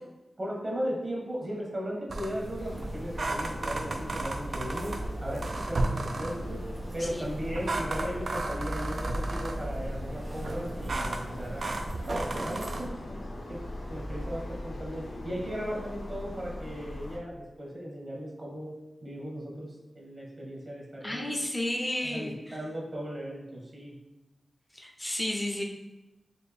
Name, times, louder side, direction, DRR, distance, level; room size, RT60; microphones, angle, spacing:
voice 1, 0.4-6.6 6.9-11.7 12.3-13.2 13.5-13.6 13.9-18.7 19.0-21.2 22.0-23.9, equal, 35° right, -3 dB, 1.1 m, -37 dB
sound 1, 2.1-12.9, right 2 dB, 60° right, 0.4 m, -34 dB
sound 2, 2.6-17.2, left 1 dB, 65° left, 0.7 m, -40 dB
voice 2, 21.0-22.6 24.7-25.6, left 1 dB, 15° left, 0 dB, 0.6 m, -32 dB
4.2 x 2.6 x 3.4 m, 0.99 s
wide cardioid pair, 120°, 0 cm